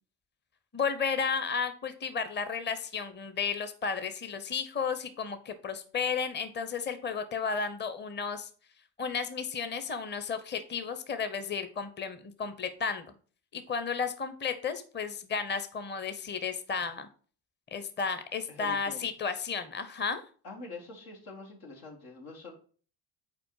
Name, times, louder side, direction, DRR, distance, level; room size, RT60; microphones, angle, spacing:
voice 1, 0.7-8.5 9.0-13.1 13.5-17.1 17.7-20.2, left 5 dB, 25° left, 10 dB, 0.7 m, -33 dB
voice 2, 18.5-19.1 20.4-22.5, left 3 dB, 90° left, 1 dB, 1.5 m, -45 dB
5.1 x 4.4 x 4.6 m, 0.42 s
supercardioid pair, 65°, 40 cm